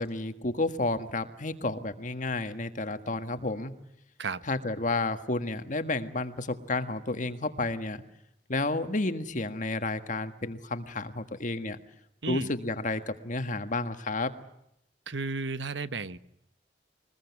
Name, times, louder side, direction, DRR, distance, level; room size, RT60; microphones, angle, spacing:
voice 1, 0.0-3.7 4.5-8.0 8.5-11.8 12.3-14.3, left 2 dB, 45° left, 9 dB, 1.6 m, -31 dB
voice 2, 15.1-16.2, right 4 dB, 80° right, 14 dB, 1.1 m, -33 dB
23.0 x 21.0 x 9.5 m, 0.76 s
head